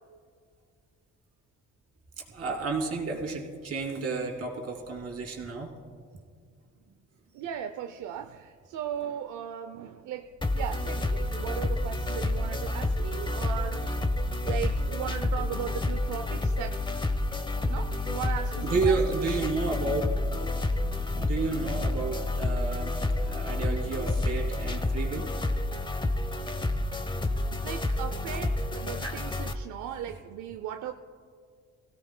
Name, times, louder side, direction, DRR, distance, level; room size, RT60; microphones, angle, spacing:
voice 1, 2.3-5.7 18.6-20.1 21.1-25.3 29.0-29.2, right 4 dB, 50° right, 0 dB, 2.7 m, -31 dB
voice 2, 7.3-10.3 10.5-13.8 14.4-17.0 17.6-19.0 27.4-30.9, right 9 dB, 80° right, 7 dB, 0.6 m, -37 dB
sound 1, 10.4-29.5, left 2 dB, 15° left, 0.8 m, -29 dB
24.0 x 16.5 x 2.2 m, 2.1 s
cardioid pair, 90°, 30 cm